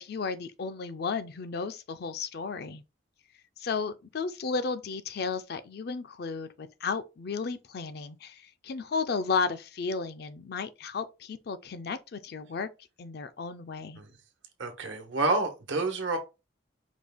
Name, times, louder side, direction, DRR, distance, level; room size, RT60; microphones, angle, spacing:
voice 1, 0.0-2.8 3.6-12.7 13.0-14.0, left 5 dB, 55° left, 0.4 m, -33 dB
voice 2, 14.6-16.2, right 2 dB, 85° right, 1.1 m, -28 dB
5.0 x 2.3 x 3.5 m
head